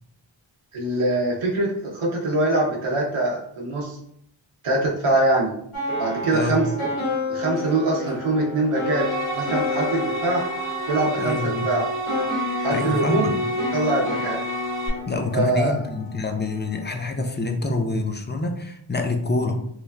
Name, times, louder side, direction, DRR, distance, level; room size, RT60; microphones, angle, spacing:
voice 1, 0.7-4.0 4.6-5.5 6.0-6.7 7.3-9.1 9.3-10.4 10.9-11.4 11.6-11.9 12.6-13.3 13.7-14.4 15.3-15.7, right 2 dB, 90° right, -3 dB, 0.7 m, -23 dB
sound 1, 5.7-16.8, left 3 dB, 85° left, 1.1 m, -31 dB
sound 2, 8.8-14.9, right 2 dB, 50° right, 1.0 m, -29 dB
voice 2, 11.2-11.7 12.7-13.3 15.1-19.6, left 2 dB, 25° left, 4 dB, 0.4 m, -26 dB
3.1 x 2.2 x 2.4 m, 0.70 s
wide cardioid pair, 45°, 49 cm